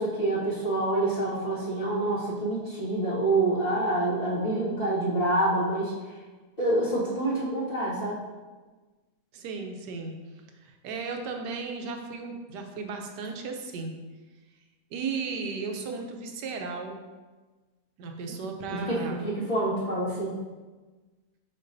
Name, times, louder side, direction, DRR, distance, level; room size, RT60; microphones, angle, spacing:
voice 1, 0.0-5.9 6.6-8.2 18.7-20.4, right 2 dB, 30° left, -12 dB, 2.1 m, -27 dB
voice 2, 9.3-10.2 10.6-13.9 14.9-17.0 18.0-19.3, right 4 dB, 80° right, 4 dB, 1.4 m, -35 dB
6.6 x 6.0 x 2.6 m, 1.3 s
omnidirectional pair, 1.8 m